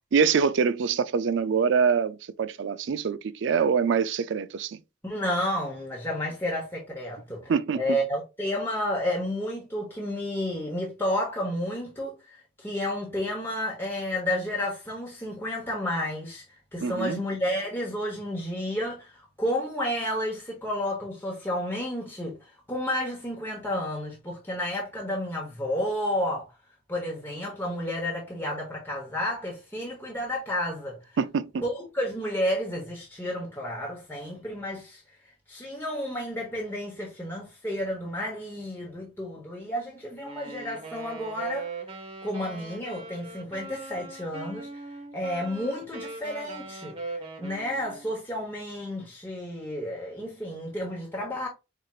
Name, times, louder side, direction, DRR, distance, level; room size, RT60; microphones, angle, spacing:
voice 1, 0.1-4.8 7.5-8.0 16.8-17.2 31.2-31.6, right 6 dB, 65° right, 0.4 m, -25 dB
voice 2, 5.0-16.4 16.7-26.5 26.9-31.0 31.6-35.0 35.5-41.7 42.2-44.8 45.1-46.9 47.4-51.5, left 1 dB, 10° left, 1.0 m, -31 dB
Wind instrument woodwind instrument, 40.2-48.2, right 3 dB, 30° right, 1.2 m, -40 dB
4.9 x 4.4 x 2.4 m
head